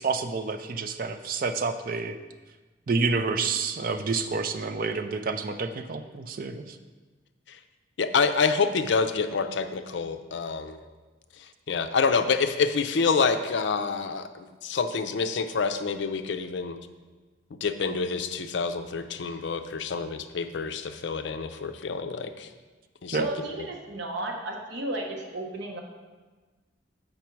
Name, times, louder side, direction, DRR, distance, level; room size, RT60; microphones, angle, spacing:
voice 1, 0.0-2.2 2.9-6.8 23.1-23.3, right 4 dB, 45° right, 8 dB, 0.4 m, -29 dB
voice 2, 8.0-10.8 11.3-16.8 17.5-22.5 23.0-23.3 23.6-23.7, left 5 dB, 65° left, 9 dB, 0.4 m, -27 dB
voice 3, 23.2-25.8, right 2 dB, 65° right, 1 dB, 1.0 m, -34 dB
7.1 x 5.2 x 4.6 m, 1.3 s
head